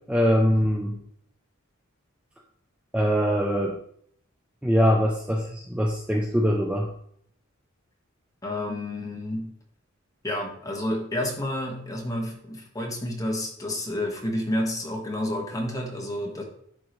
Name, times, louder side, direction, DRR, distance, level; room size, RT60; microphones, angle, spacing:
voice 1, 0.1-1.0 2.9-3.8 4.6-6.9, equal, 5° right, 0 dB, 0.6 m, -23 dB
voice 2, 8.4-9.5 10.2-16.4, left 1 dB, 15° left, -1 dB, 1.5 m, -30 dB
11.0 x 3.8 x 3.2 m, 0.66 s
head